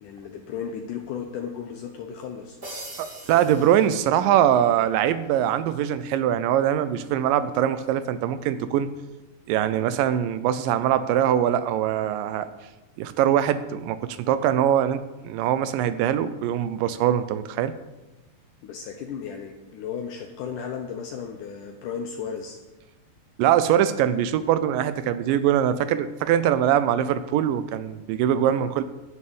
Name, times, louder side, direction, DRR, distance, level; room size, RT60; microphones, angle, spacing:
voice 1, 0.0-2.6 18.6-22.6, left 7 dB, 75° left, 4 dB, 2.1 m, -35 dB
sound 1, 2.6-4.7, right 1 dB, 15° right, 2.9 m, -42 dB
voice 2, 3.0-8.9 9.5-12.5 13.0-17.7 23.4-28.8, right 10 dB, 80° right, 12 dB, 2.1 m, -22 dB
11.0 x 7.1 x 8.6 m, 1.1 s
omnidirectional pair, 4.2 m